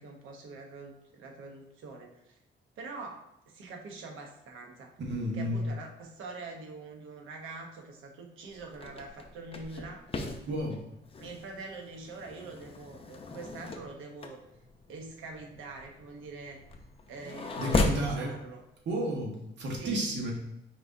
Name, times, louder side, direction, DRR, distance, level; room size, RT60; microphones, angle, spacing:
voice 1, 0.0-2.4 2.8-4.9 5.3-10.0 11.2-14.4 14.9-16.6 17.1-18.6 19.8-20.3, right 3 dB, 85° right, 1 dB, 0.9 m, -44 dB
voice 2, 5.1-5.5 10.5-10.8 17.6-18.3 18.8-20.3, right 1 dB, 65° right, -1 dB, 1.5 m, -32 dB
sound 1, 8.5-18.1, left 3 dB, 30° left, 0.6 m, -36 dB
4.9 x 3.6 x 2.7 m, 0.86 s
cardioid pair, 90°, 20 cm